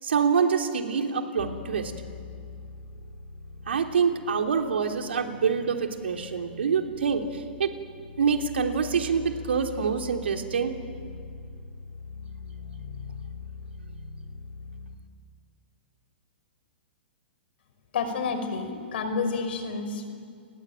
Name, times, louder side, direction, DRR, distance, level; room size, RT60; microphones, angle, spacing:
voice 1, 0.0-1.9 3.7-7.8 8.2-10.8, right 6 dB, 80° right, 4 dB, 3.3 m, -26 dB
sound 1, 1.4-15.0, left 4 dB, 85° left, 2.3 m, -42 dB
voice 2, 17.9-20.2, left 4 dB, 65° left, 7 dB, 5.4 m, -30 dB
29.0 x 21.0 x 9.2 m, 2.3 s
hypercardioid pair, 135°, 6 cm